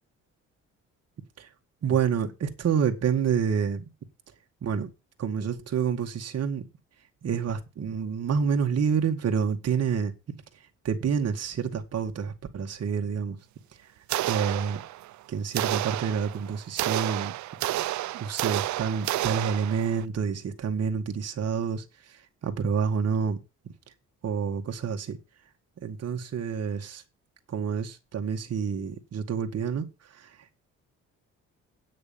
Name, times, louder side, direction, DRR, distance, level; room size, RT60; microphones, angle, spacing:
voice 1, 1.8-3.9 4.6-4.9 5.2-6.7 7.2-10.1 10.8-13.4 13.8-13.9 14.2-14.8 15.3-17.3 17.7-17.8 18.1-23.4 24.2-25.2 25.8-27.0 27.5-30.5, right 6 dB, 55° right, 2.1 m, -28 dB
sound 1, 14.1-15.2 15.5-20.0, right 15 dB, 70° right, 0.6 m, -30 dB
9.2 x 6.5 x 7.1 m
cardioid pair, 90°, 30 cm